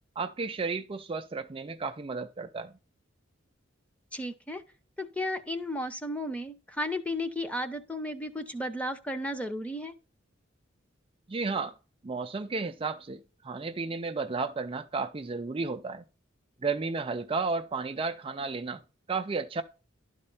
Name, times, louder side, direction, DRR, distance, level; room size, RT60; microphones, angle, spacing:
voice 1, 0.2-2.7 11.3-11.8 12.0-16.0 16.6-18.8 19.1-19.6, right 4 dB, 25° right, 0.4 m, -33 dB
voice 2, 4.1-4.6 5.0-9.9, left 1 dB, 5° left, 0.8 m, -34 dB
12.0 x 4.3 x 5.5 m
head